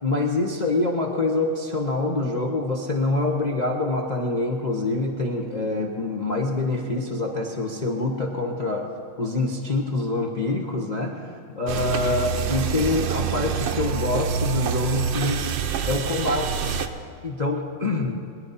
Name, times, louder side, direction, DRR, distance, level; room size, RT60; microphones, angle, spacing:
voice 1, 0.0-8.9 9.2-15.5 15.9-16.6 17.2-18.2, left 2 dB, 45° left, -1 dB, 0.5 m, -25 dB
sound 1, 11.7-16.9, right 6 dB, 70° right, 1.4 m, -26 dB
22.0 x 10.5 x 4.1 m, 2.4 s
omnidirectional pair, 2.3 m